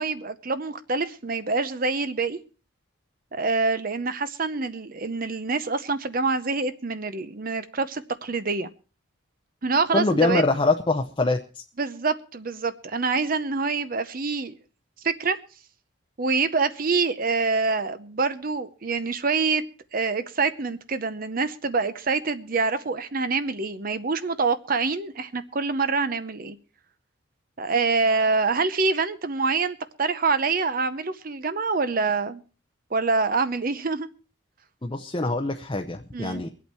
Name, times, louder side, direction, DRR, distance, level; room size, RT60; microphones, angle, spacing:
voice 1, 0.0-2.4 3.3-8.7 9.6-10.6 11.8-14.5 15.0-15.4 16.2-19.6 19.9-26.6 27.6-32.4 32.9-34.1 36.1-36.4, right 4 dB, 40° right, 12 dB, 0.7 m, -26 dB
voice 2, 9.9-11.6 34.8-36.5, left 2 dB, 25° left, 4 dB, 0.7 m, -24 dB
23.0 x 8.5 x 4.4 m, 0.37 s
head